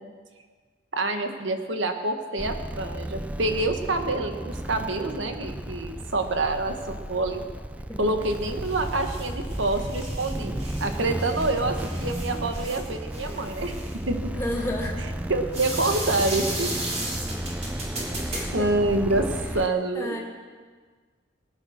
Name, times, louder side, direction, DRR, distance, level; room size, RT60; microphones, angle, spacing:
voice 1, 0.9-7.4 8.0-13.7 14.1-14.3 15.0-16.7 18.5-19.3 19.5-20.2, right 2 dB, 80° right, 6 dB, 1.5 m, -27 dB
sound 1, 2.4-19.7, right 1 dB, 5° right, 0.4 m, -33 dB
sound 2, 8.2-19.5, right 2 dB, 35° right, 3.4 m, -36 dB
voice 2, 14.3-15.0 18.3-18.7 19.9-20.2, left 1 dB, 10° left, -2 dB, 2.7 m, -31 dB
19.0 x 9.8 x 6.4 m, 1.5 s
head